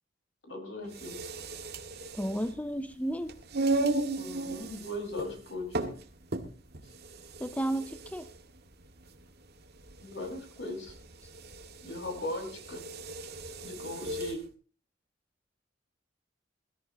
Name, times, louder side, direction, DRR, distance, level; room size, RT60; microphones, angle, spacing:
voice 1, 0.5-1.4 4.1-5.9 10.0-10.9 11.8-12.8 13.6-14.4, left 1 dB, 70° left, 3 dB, 5.5 m, -38 dB
sound 1, 0.8-14.4, right 2 dB, 60° right, 1.9 m, -36 dB
voice 2, 2.1-3.4 7.4-8.3, right 1 dB, 10° left, 11 dB, 0.7 m, -33 dB
22.0 x 14.0 x 3.0 m, 0.36 s
head